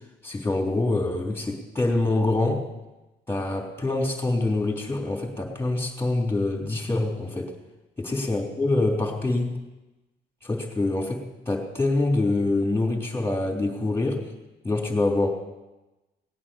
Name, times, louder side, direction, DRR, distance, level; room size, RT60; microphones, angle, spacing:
voice 1, 0.2-2.7 3.3-7.5 8.0-9.6 10.4-14.3 14.6-15.3, left 2 dB, 10° left, 1 dB, 3.5 m, -25 dB
18.5 x 8.7 x 7.2 m, 1.1 s
cardioid pair, 90°, 20 cm